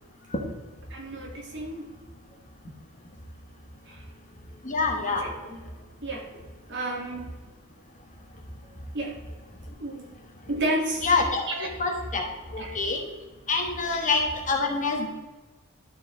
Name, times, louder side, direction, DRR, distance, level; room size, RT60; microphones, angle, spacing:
voice 1, 0.9-1.9 3.9-4.0 5.0-5.6 6.0-6.3 6.7-7.3 8.9-9.2 9.8-10.0 10.5-11.1 11.5-11.7 12.6-12.8, right 1 dB, 55° right, -1 dB, 2.2 m, -31 dB
voice 2, 4.6-5.3 11.0-11.4 11.8-12.2 12.5-13.0 13.5-15.1, left 4 dB, 35° left, 2 dB, 1.3 m, -25 dB
12.0 x 4.9 x 3.9 m, 1.2 s
head